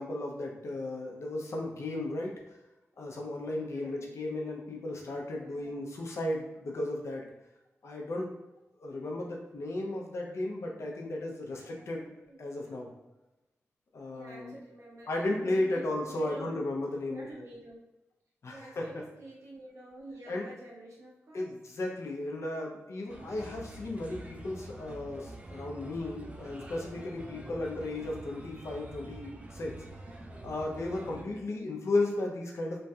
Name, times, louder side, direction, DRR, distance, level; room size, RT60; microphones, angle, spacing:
voice 1, 0.0-2.4 3.0-7.3 7.8-8.3 8.8-12.1 12.4-12.9 13.9-14.5 15.1-17.3 18.4-19.1 20.3-20.5 21.3-29.8 30.4-32.8, left 2 dB, 65° left, -1 dB, 0.5 m, -35 dB
voice 2, 3.7-4.1 5.4-5.9 11.4-13.0 14.1-16.6 17.1-17.9 18.5-21.5 27.4-27.7 31.1-31.6, right 1 dB, 80° right, -5 dB, 0.9 m, -49 dB
Bird, 23.1-31.2, right 1 dB, 25° right, 0.4 m, -46 dB
3.0 x 2.3 x 2.7 m, 0.98 s
wide cardioid pair, 85°, 5 cm